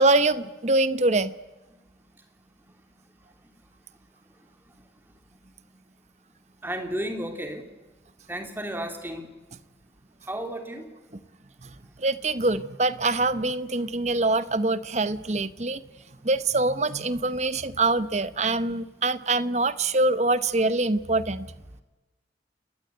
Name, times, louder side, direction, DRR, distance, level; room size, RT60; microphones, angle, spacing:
voice 1, 0.0-1.3 11.6-11.7 12.0-15.8 16.2-21.5, right 2 dB, 40° right, 14 dB, 1.0 m, -24 dB
voice 2, 6.6-7.6 8.3-9.3 10.3-10.8, right 1 dB, 10° right, 5 dB, 2.9 m, -32 dB
29.5 x 20.0 x 8.2 m, 1.1 s
head